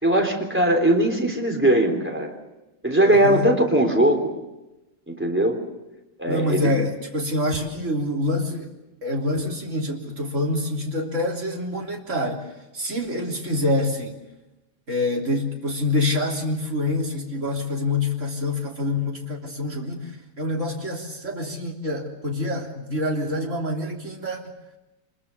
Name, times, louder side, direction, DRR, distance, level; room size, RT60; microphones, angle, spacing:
voice 1, 0.0-2.3 2.8-4.3 5.1-5.6 6.2-6.7, right 1 dB, 5° right, 2 dB, 3.6 m, -20 dB
voice 2, 3.0-3.5 6.2-8.7 9.0-14.2 14.9-24.4, left 2 dB, 35° right, 0 dB, 3.5 m, -26 dB
25.0 x 22.0 x 7.0 m, 1.0 s
omnidirectional pair, 2.2 m